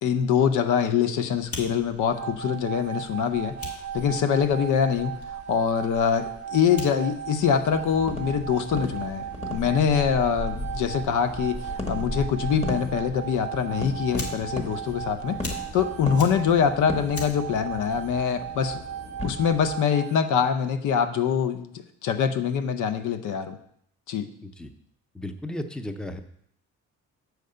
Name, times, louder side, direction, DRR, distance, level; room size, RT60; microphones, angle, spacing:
voice 1, 0.0-3.6 3.9-5.2 5.5-9.3 9.5-18.8 19.2-23.6 24.1-24.3, left 7 dB, 80° left, 9 dB, 0.8 m, -24 dB
Fire, 1.3-18.7, left 1 dB, 50° left, 1.8 m, -40 dB
sound 1, 2.1-20.2, right 9 dB, 60° right, 0.6 m, -37 dB
sound 2, 7.7-19.8, left 2 dB, 20° left, 1.3 m, -38 dB
voice 2, 25.1-26.2, left 1 dB, 5° left, 8 dB, 0.6 m, -34 dB
6.6 x 4.7 x 6.7 m, 0.70 s
cardioid pair, 90°, 30 cm